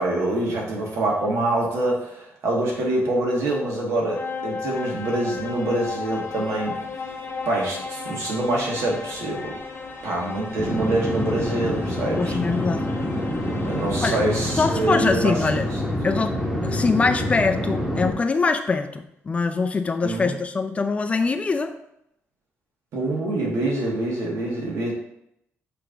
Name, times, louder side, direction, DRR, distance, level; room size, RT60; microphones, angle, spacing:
voice 1, 0.0-6.7 7.5-9.5 10.0-12.4 13.7-15.3 20.0-20.4 22.9-24.9, right 2 dB, 75° right, -2 dB, 2.0 m, -25 dB
sound 1, 3.0-15.8, left 4 dB, 50° left, 1.0 m, -35 dB
sound 2, 10.6-18.1, left 1 dB, 5° right, 1.3 m, -26 dB
voice 2, 12.2-12.9 14.0-14.2 14.6-15.7 16.0-21.7, left 4 dB, 25° left, 7 dB, 0.4 m, -23 dB
7.9 x 3.5 x 3.9 m, 0.79 s
cardioid pair, 135°, 5 cm